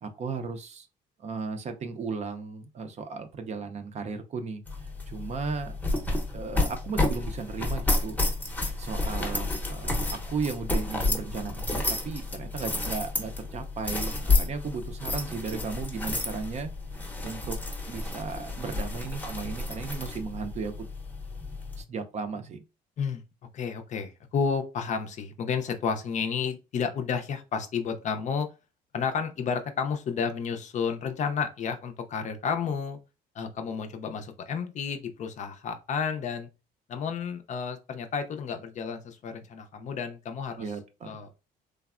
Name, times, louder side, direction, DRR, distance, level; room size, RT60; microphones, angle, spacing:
voice 1, 0.0-0.9 1.2-5.8 6.3-8.2 8.8-9.9 10.3-16.7 17.2-17.6 17.9-20.7 21.8-22.6 40.6-41.2, right 4 dB, 40° right, 0.5 m, -35 dB
sound 1, 4.7-21.8, left 2 dB, 10° left, 0.7 m, -30 dB
voice 2, 23.5-28.5 28.9-33.0 33.3-36.5 36.9-40.7 41.0-41.3, left 6 dB, 45° left, 0.5 m, -31 dB
3.3 x 2.0 x 2.3 m
cardioid pair, 110°, 17 cm